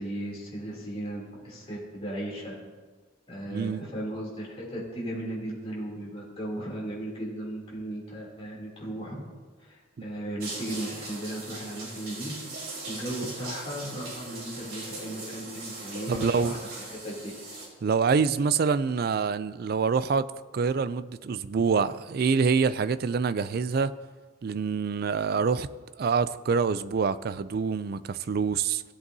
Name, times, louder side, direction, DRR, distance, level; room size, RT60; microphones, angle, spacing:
voice 1, 0.0-2.6 3.3-9.2 9.6-12.3 12.9-17.4, right 1 dB, 30° left, -5 dB, 2.9 m, -36 dB
voice 2, 3.5-3.8 16.1-16.6 17.8-20.3 20.5-23.9 24.4-25.7 26.0-28.8, right 5 dB, 45° right, 14 dB, 0.3 m, -26 dB
sound 1, 10.4-17.7, right 2 dB, 90° right, 3.2 m, -40 dB
16.5 x 7.9 x 2.7 m, 1.4 s
head